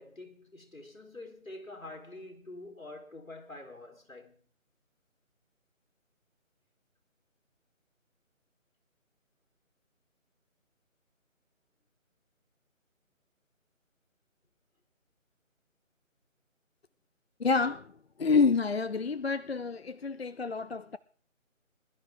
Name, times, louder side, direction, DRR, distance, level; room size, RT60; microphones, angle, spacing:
voice 1, 0.0-4.4, left 2 dB, 75° left, 3.7 m, -46 dB
voice 2, 17.4-21.0, left 4 dB, 50° left, 0.5 m, -28 dB
21.0 x 11.5 x 3.5 m
figure-of-eight pair, 160°, 40 cm